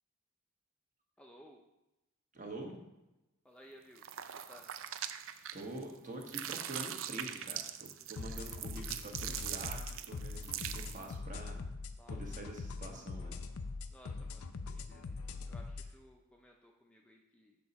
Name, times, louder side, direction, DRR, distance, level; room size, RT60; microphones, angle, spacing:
voice 1, 1.2-1.6 3.4-4.7 12.0-12.2 13.9-15.2 15.5-17.6, equal, 5° left, 0 dB, 0.5 m, -59 dB
voice 2, 2.3-2.8 5.5-11.6 12.1-13.4, right 1 dB, 40° right, 2 dB, 1.3 m, -46 dB
sound 1, 4.0-5.9 6.2-11.1, right 10 dB, 65° right, 0.4 m, -42 dB
sound 2, 8.2-15.9, left 4 dB, 85° left, 0.5 m, -42 dB
6.7 x 6.7 x 4.1 m, 0.96 s
head